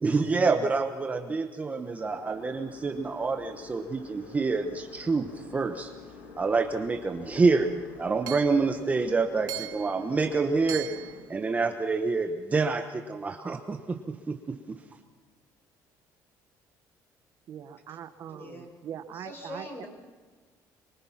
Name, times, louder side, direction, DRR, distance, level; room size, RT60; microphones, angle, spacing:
voice 1, 0.0-5.9 6.4-7.7 8.0-10.9 11.3-14.4, right 4 dB, 20° right, 6 dB, 1.2 m, -27 dB
sound 1, 1.9-11.2, left 4 dB, 80° left, 5.7 m, -48 dB
Hammer / Chink clink, 7.3-7.4 8.3-8.6 9.5-10.0 10.7-11.2, right 16 dB, 70° right, 1.6 m, -38 dB
voice 2, 17.5-19.8, right 9 dB, 50° right, 10 dB, 1.2 m, -42 dB
voice 3, 18.3-18.7 19.1-19.9, left 1 dB, 30° left, 2 dB, 6.8 m, -43 dB
25.0 x 23.0 x 5.9 m, 1.4 s
cardioid pair, 140°, 7 cm